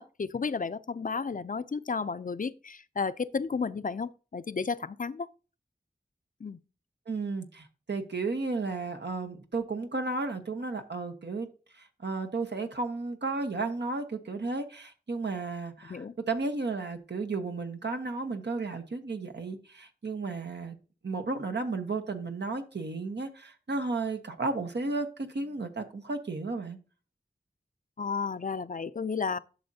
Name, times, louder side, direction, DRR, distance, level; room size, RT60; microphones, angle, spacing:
voice 1, 0.0-5.3 6.4-6.6 15.9-16.1 28.0-29.4, left 5 dB, 50° left, 0.5 m, -32 dB
voice 2, 7.1-11.5 11.7-20.8 21.0-26.8, right 3 dB, 80° right, 1.1 m, -33 dB
11.0 x 6.4 x 2.8 m
wide cardioid pair, 40°, 18 cm